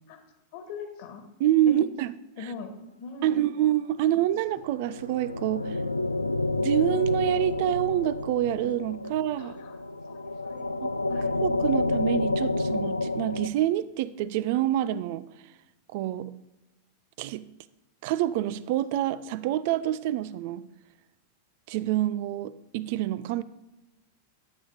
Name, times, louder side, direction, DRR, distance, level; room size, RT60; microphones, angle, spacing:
voice 1, 0.5-1.2 1.6-1.8 2.4-2.7 3.0-3.5 4.0-4.1 9.4-9.8 10.0-10.7 11.1-11.3, left 5 dB, 50° left, 5 dB, 1.8 m, -40 dB
voice 2, 1.4-2.1 2.4-2.5 3.2-5.8 6.6-9.6 10.8-10.9 11.4-15.3 15.9-16.3 17.2-17.4 18.0-20.6 21.7-23.4, right 13 dB, 50° right, 17 dB, 0.5 m, -27 dB
sound 1, 4.6-13.5, left 2 dB, 85° left, 0.4 m, -29 dB
12.5 x 8.7 x 5.1 m, 0.98 s
figure-of-eight pair, 90°, 0 cm